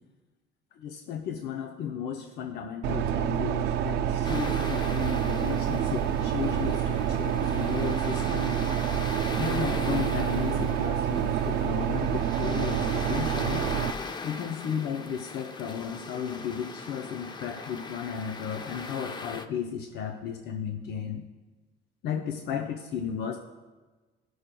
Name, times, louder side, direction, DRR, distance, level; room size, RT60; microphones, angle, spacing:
voice 1, 0.8-8.6 8.9-9.1 9.4-13.6 14.2-21.2 22.0-23.4, left 8 dB, 75° left, 3 dB, 0.7 m, -34 dB
sound 1, 2.8-13.9, right 9 dB, 80° right, 0.5 m, -27 dB
sound 2, 4.2-19.5, left 4 dB, 25° left, 0.5 m, -40 dB
16.0 x 6.3 x 2.2 m, 1.2 s
cardioid pair, 110°, 17 cm